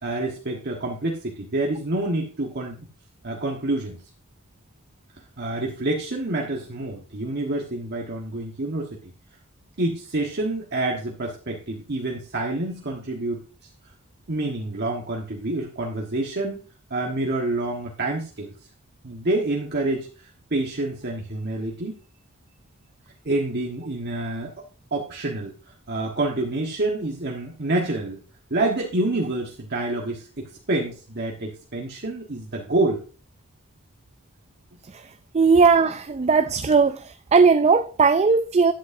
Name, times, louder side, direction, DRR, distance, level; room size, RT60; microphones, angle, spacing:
voice 1, 0.0-2.8 3.2-4.0 5.4-9.1 9.8-13.4 14.3-16.6 16.9-18.5 19.0-22.0 23.2-24.5 24.9-25.5 25.9-28.2 28.5-33.0, right 2 dB, 50° right, 1.4 m, -27 dB
voice 2, 35.3-37.0 37.3-38.7, right 5 dB, 30° right, 0.4 m, -17 dB
12.0 x 8.3 x 2.7 m
head